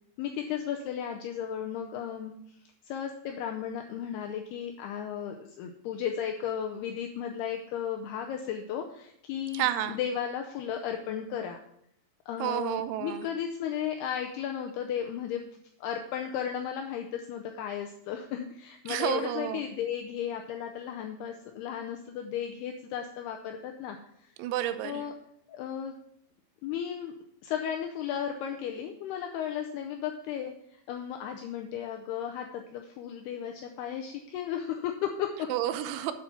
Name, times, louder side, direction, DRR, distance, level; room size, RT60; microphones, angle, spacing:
voice 1, 0.2-2.6 2.8-11.6 12.3-15.4 15.8-24.3 24.8-25.1 25.5-26.0 26.6-27.1 27.4-35.5, left 9 dB, 90° left, 3 dB, 2.2 m, -35 dB
voice 2, 9.5-10.0 12.4-13.3 18.9-19.6 24.4-25.0 35.5-36.1, right 12 dB, 85° right, 10 dB, 3.1 m, -30 dB
8.4 x 7.7 x 5.9 m, 0.72 s
omnidirectional pair, 5.5 m